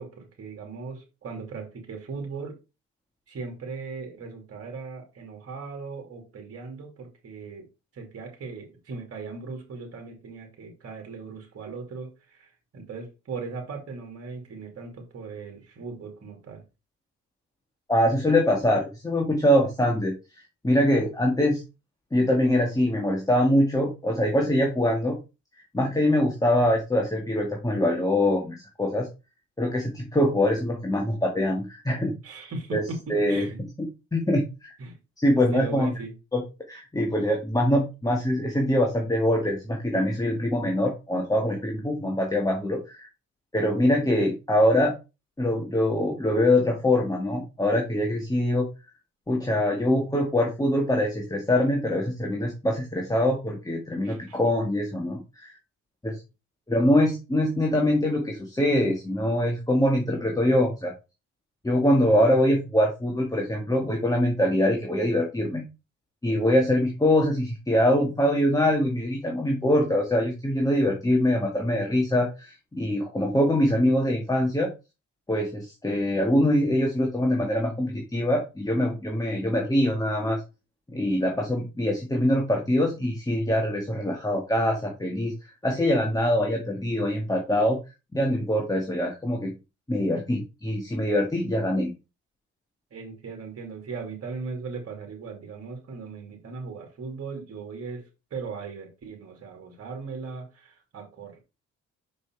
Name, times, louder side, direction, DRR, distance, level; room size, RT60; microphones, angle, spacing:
voice 1, 0.0-2.6 3.3-7.7 7.9-16.6 32.2-33.6 34.8-35.0 35.5-36.1 54.0-54.4 92.9-101.4, right 4 dB, 50° right, 2 dB, 2.9 m, -38 dB
voice 2, 17.9-20.2 20.6-21.6 22.1-25.2 25.7-29.1 29.6-32.2 32.7-32.8 33.1-33.5 34.1-34.7 35.2-35.9 36.3-36.4 36.7-43.1 43.5-44.9 45.4-48.7 49.3-55.5 56.0-56.2 56.7-60.9 61.6-65.7 66.2-74.7 75.3-80.4 80.9-85.3 85.6-87.8 88.1-89.5 89.9-91.9, left 1 dB, 10° left, 1 dB, 1.8 m, -23 dB
6.1 x 5.3 x 4.6 m, 0.28 s
cardioid pair, 90°, 30 cm